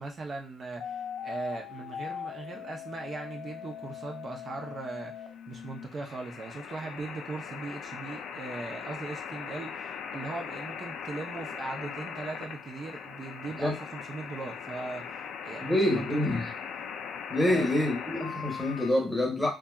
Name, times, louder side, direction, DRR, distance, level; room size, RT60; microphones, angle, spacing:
voice 1, 0.0-16.4 17.4-17.7, right 3 dB, 45° right, 2 dB, 0.5 m, -39 dB
sound 1, 0.8-18.9, left 7 dB, 80° left, 0.3 m, -40 dB
voice 2, 15.6-16.5 17.3-19.5, left 1 dB, 10° left, 1 dB, 0.9 m, -26 dB
2.7 x 2.3 x 2.2 m, 0.30 s
cardioid pair, 90°, 0 cm